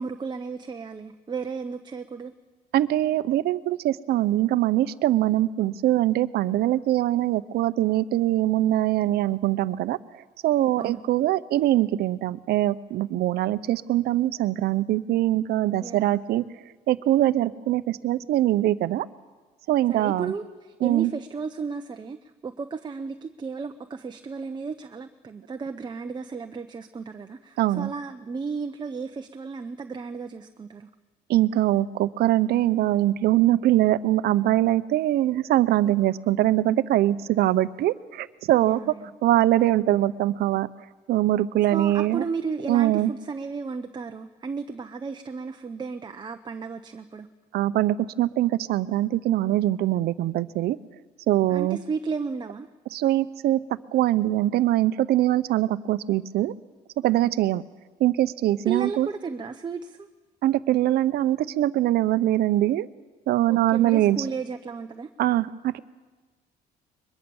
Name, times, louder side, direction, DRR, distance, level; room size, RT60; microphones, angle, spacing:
voice 1, 0.0-2.3 10.8-11.0 15.8-16.2 19.9-30.9 38.6-39.1 41.7-47.3 51.5-52.7 58.7-60.1 63.5-65.1, right 5 dB, 25° right, 6 dB, 0.9 m, -34 dB
voice 2, 2.7-10.0 10.4-16.4 16.9-19.1 19.7-20.3 20.8-21.1 27.6-27.9 31.3-38.8 39.2-40.7 41.1-42.2 42.7-43.1 47.5-50.8 51.3-51.8 52.9-53.6 53.9-56.5 57.0-57.6 58.0-59.1 60.4-62.9 63.3-64.2 65.2-65.8, right 14 dB, 70° right, 14 dB, 0.8 m, -22 dB
22.5 x 21.5 x 7.2 m, 1.3 s
cardioid pair, 110°, 17 cm